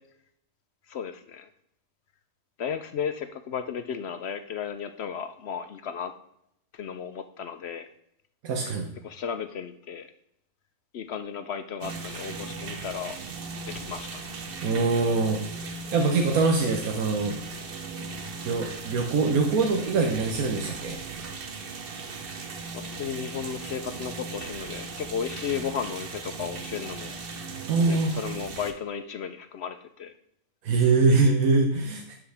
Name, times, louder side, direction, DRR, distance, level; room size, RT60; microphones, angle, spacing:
voice 1, 0.9-1.5 2.6-6.1 6.7-7.9 9.0-10.1 10.9-13.2 13.7-14.2 22.7-27.1 27.8-30.1, left 7 dB, 60° left, 10 dB, 0.7 m, -34 dB
voice 2, 8.4-8.9 14.6-15.4 15.9-17.4 18.4-21.0 27.7-28.2 30.6-32.2, right 3 dB, 80° right, 3 dB, 1.4 m, -23 dB
sound 1, 11.8-28.7, right 4 dB, 45° right, 1.0 m, -38 dB
11.5 x 5.5 x 3.4 m, 0.75 s
omnidirectional pair, 1.5 m